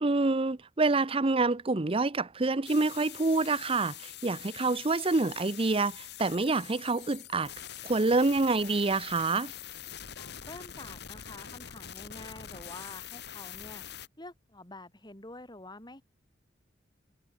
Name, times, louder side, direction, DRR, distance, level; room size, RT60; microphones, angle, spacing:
voice 1, 0.0-7.5 7.8-9.5, right 3 dB, 30° right, 0.7 m, -27 dB
sound 1, 2.6-14.1, left 10 dB, 65° left, 1.6 m, -44 dB
voice 2, 10.2-13.8 14.2-16.0, left 2 dB, 25° left, 4.1 m, -47 dB
head